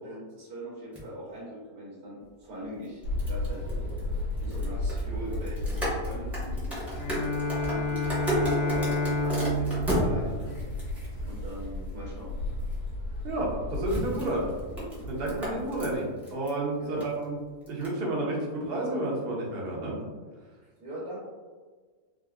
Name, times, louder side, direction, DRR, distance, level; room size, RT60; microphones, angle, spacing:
voice 1, 0.0-3.0 3.3-3.6 4.4-6.7 7.1-7.3 7.6-10.4 11.2-12.6 16.8-17.0 20.8-21.2, equal, 85° right, -7 dB, 1.4 m, -41 dB
sound 1, 0.9-1.0 2.8-11.9 12.6-12.7 13.7-16.6 16.8-17.2 17.7-17.9, equal, ahead, 0.6 m, -34 dB
sound 2, 3.0-16.0, left 1 dB, 75° left, 1.5 m, -35 dB
Bowed string instrument, 6.9-11.0, left 2 dB, 60° left, 0.9 m, -30 dB
voice 2, 13.2-14.5 15.1-17.4 17.7-20.0, right 1 dB, 55° right, -3 dB, 0.7 m, -30 dB
3.6 x 2.1 x 2.3 m, 1.4 s
omnidirectional pair, 1.7 m